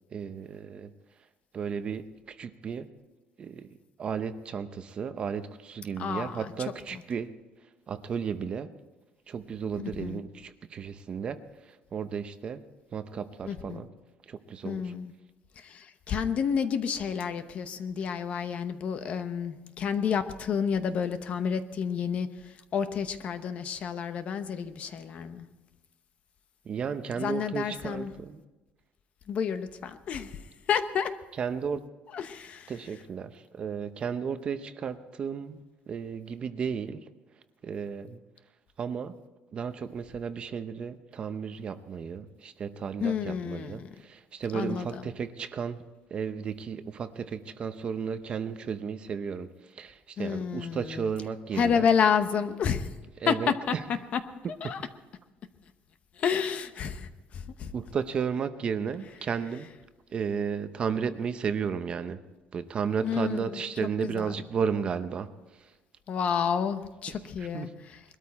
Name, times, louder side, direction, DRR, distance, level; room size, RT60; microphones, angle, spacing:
voice 1, 0.1-0.9 1.5-2.9 3.4-3.7 4.0-7.3 7.9-8.7 9.3-11.4 11.9-12.6 12.9-13.9 14.3-14.9 26.7-28.4 31.4-31.8 32.7-37.0 37.6-38.2 38.8-39.1 39.5-45.8 46.1-49.5 49.8-51.9 53.2-53.8 54.6-54.7 57.7-59.7 60.1-62.2 62.5-65.3 67.4-67.7, right 6 dB, 30° right, 10 dB, 0.7 m, -33 dB
voice 2, 6.0-6.5 6.9-7.0 9.8-10.2 13.4-13.8 14.6-15.1 15.6-22.3 22.7-25.5 27.2-28.1 29.3-30.3 30.7-31.1 32.1-32.7 43.0-43.9 44.5-45.0 50.2-51.1 51.5-52.9 53.3-53.7 54.1-54.2 54.5-54.8 56.2-57.1 57.3-57.7 63.0-63.4 64.0-64.4 66.1-68.0, left 7 dB, 40° left, 10 dB, 0.9 m, -30 dB
21.5 x 13.0 x 4.2 m, 1.1 s
cardioid pair, 165°, 3 cm